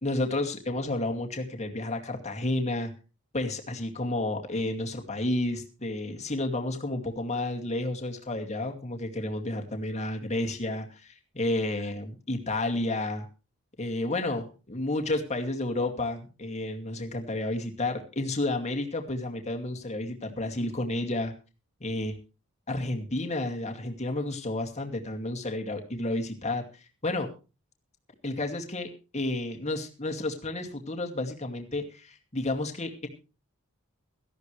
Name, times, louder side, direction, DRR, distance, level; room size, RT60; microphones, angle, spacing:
voice 1, 0.0-2.9 3.3-13.3 13.8-21.3 21.8-22.1 22.7-26.7 27.0-27.3 28.2-28.9 29.1-33.1, left 2 dB, 35° left, 4 dB, 2.4 m, -31 dB
17.5 x 13.5 x 3.3 m, 0.32 s
head